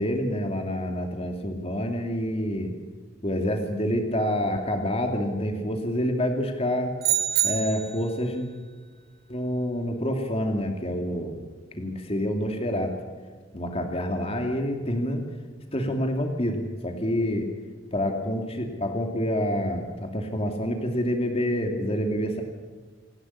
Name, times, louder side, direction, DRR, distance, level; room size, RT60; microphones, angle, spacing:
voice 1, 0.0-2.8 3.2-6.9 7.4-8.5 9.3-11.4 11.8-12.9 13.5-15.2 15.7-17.5 17.9-22.4, equal, 30° left, 3 dB, 2.6 m, -27 dB
sound 1, 7.0-8.1, right 11 dB, 55° right, 2.3 m, -25 dB
28.0 x 11.5 x 9.9 m, 1.5 s
head